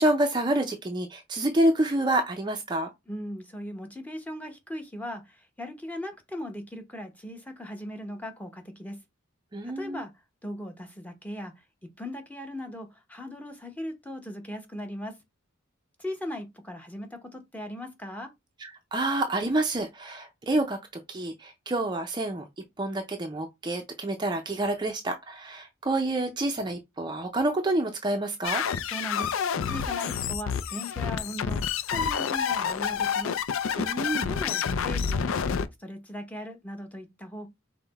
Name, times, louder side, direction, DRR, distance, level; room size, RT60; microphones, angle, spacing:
voice 1, 0.0-2.9 9.5-10.0 18.6-20.8 21.1-28.6 33.8-34.3, right 1 dB, 20° right, 0.5 m, -28 dB
voice 2, 3.1-9.0 9.6-10.1 10.4-15.1 16.0-18.3 28.9-29.3 29.7-33.4 34.3-35.3 35.8-37.5, left 1 dB, 5° left, 0.8 m, -38 dB
sound 1, 28.4-35.7, left 7 dB, 75° left, 0.4 m, -28 dB
5.7 x 2.1 x 4.0 m
head